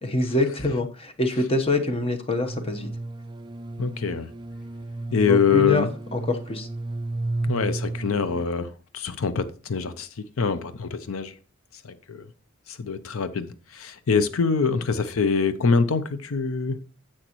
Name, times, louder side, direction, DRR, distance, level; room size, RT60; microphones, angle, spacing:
voice 1, 0.0-2.9 5.2-6.7, left 2 dB, 25° left, 1.0 m, -25 dB
sound 1, 2.5-8.4, right 2 dB, 20° right, 0.4 m, -32 dB
voice 2, 3.8-4.3 5.1-5.9 7.5-10.1 10.4-11.3 11.8-12.3 12.7-16.8, left 5 dB, 80° left, 0.6 m, -24 dB
10.0 x 7.7 x 3.0 m
head